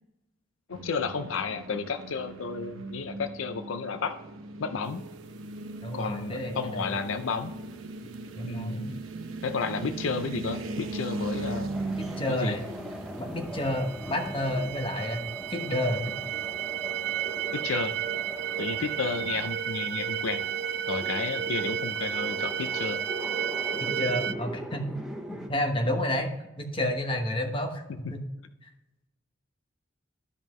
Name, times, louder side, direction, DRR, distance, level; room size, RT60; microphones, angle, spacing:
voice 1, 0.7-4.1 4.6-5.0 5.9-7.5 8.4-9.0 9.4-11.7 12.3-12.6 17.5-18.0 18.6-20.4 20.9-23.0, left 5 dB, 75° left, 10 dB, 0.5 m, -32 dB
sound 1, 0.7-14.9, right 2 dB, 80° right, 0.9 m, -39 dB
voice 2, 5.8-6.9 8.4-8.9 11.9-12.6 13.2-15.2 15.5-16.1 23.8-24.9 25.3-26.3 26.6-28.2, left 1 dB, 25° left, 3 dB, 1.1 m, -30 dB
sound 2, 11.7-25.5, equal, 5° right, 0.7 m, -41 dB
sound 3, 13.6-24.3, right 9 dB, 55° right, 0.3 m, -32 dB
12.5 x 5.4 x 3.1 m, 0.97 s
head